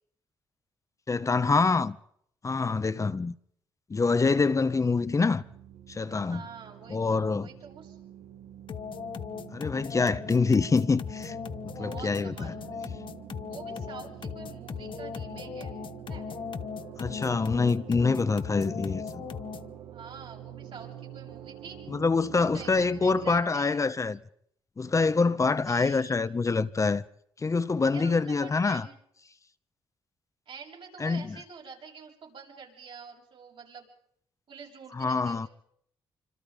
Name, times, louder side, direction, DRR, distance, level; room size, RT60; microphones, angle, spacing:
voice 1, 1.1-2.0 2.4-3.3 3.9-5.4 5.9-6.4 6.9-7.5 9.5-11.4 11.8-12.5 17.0-19.2 21.9-24.2 24.8-27.0 27.4-28.9 31.0-31.4 34.9-35.5, left 4 dB, 35° left, 1.0 m, -25 dB
sound 1, 4.7-23.4, right 10 dB, 90° right, 1.6 m, -46 dB
voice 2, 6.3-8.0 11.8-12.6 13.4-15.8 16.1-16.3 19.9-21.8 22.3-23.8 25.7-26.2 27.9-29.0 30.5-33.9 34.5-35.5, right 6 dB, 65° right, 7.4 m, -46 dB
sound 2, 8.7-19.8, left 7 dB, 55° left, 1.1 m, -38 dB
26.0 x 25.5 x 5.2 m
supercardioid pair, 65°, 10 cm